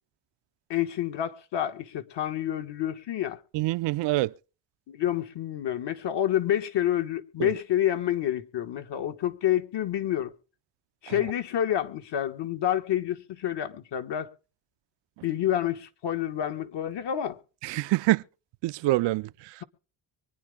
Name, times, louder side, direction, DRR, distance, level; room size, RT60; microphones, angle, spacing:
voice 1, 0.7-3.4 4.9-10.3 11.0-14.3 15.2-17.4, left 11 dB, 65° left, 1.6 m, -28 dB
voice 2, 3.5-4.3 7.4-7.5 17.6-18.2 18.6-19.6, right 18 dB, 70° right, 0.6 m, -26 dB
24.0 x 9.8 x 3.7 m
cardioid pair, 75°, 44 cm